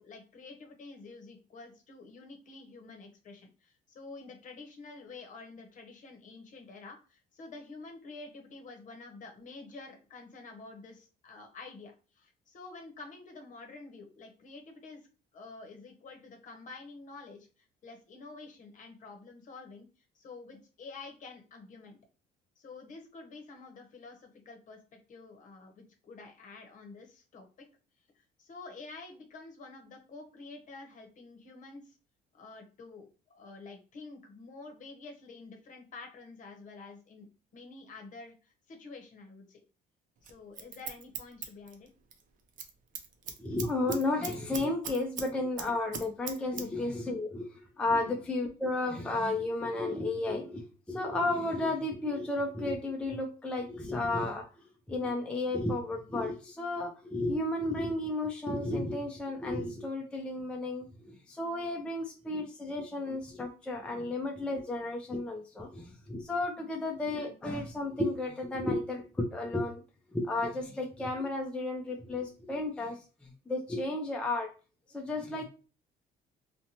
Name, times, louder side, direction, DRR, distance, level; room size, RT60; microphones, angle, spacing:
voice 1, 0.0-15.0 15.3-19.9 20.1-22.0 22.6-24.8 25.1-27.5 28.4-31.9 32.3-39.6 40.3-41.9 46.5-46.7 47.9-48.2 66.6-66.8, left 3 dB, 50° left, 4 dB, 0.8 m, -49 dB
Scissors, 40.2-42.2 42.5-42.7 43.0-45.3 45.6-46.7 46.9-47.0, right 6 dB, 50° right, 0.5 m, -39 dB
voice 2, 43.4-47.5 47.8-54.4 54.9-69.8 70.1-74.5 74.9-75.4, left 2 dB, 5° left, 1 dB, 0.4 m, -33 dB
2.7 x 2.1 x 2.8 m, 0.35 s
cardioid pair, 110°, 17 cm